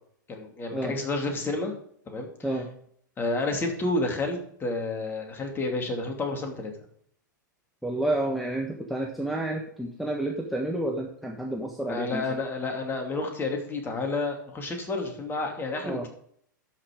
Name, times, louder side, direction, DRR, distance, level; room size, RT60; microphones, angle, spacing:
voice 1, 0.3-1.7 2.1-2.3 3.2-6.7 11.9-16.1, left 2 dB, 20° left, 3 dB, 2.5 m, -30 dB
voice 2, 7.8-12.4 15.8-16.1, right 1 dB, ahead, 1 dB, 1.3 m, -30 dB
12.0 x 5.9 x 4.9 m, 0.64 s
figure-of-eight pair, 100°, 11 cm